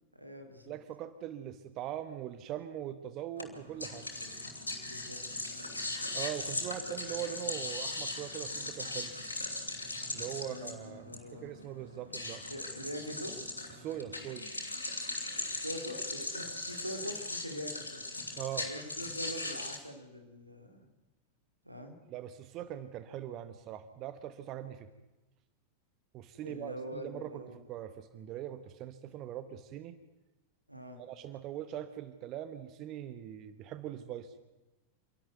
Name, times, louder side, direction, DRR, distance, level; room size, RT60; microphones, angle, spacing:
voice 1, 0.1-0.7 4.9-5.2 10.4-11.6 12.5-13.5 15.2-18.1 18.6-20.9 21.6-22.0 26.4-27.7 30.7-31.0, equal, 90° right, 5 dB, 2.5 m, -44 dB
voice 2, 0.7-4.1 6.1-9.1 10.1-12.4 13.8-14.5 18.4-18.7 22.1-24.9 26.1-30.0 31.0-34.3, right 11 dB, 35° right, 12 dB, 1.1 m, -41 dB
sound 1, 3.4-19.8, left 2 dB, 80° left, 2.8 m, -39 dB
27.0 x 11.5 x 9.2 m, 1.1 s
figure-of-eight pair, 90°, 0 cm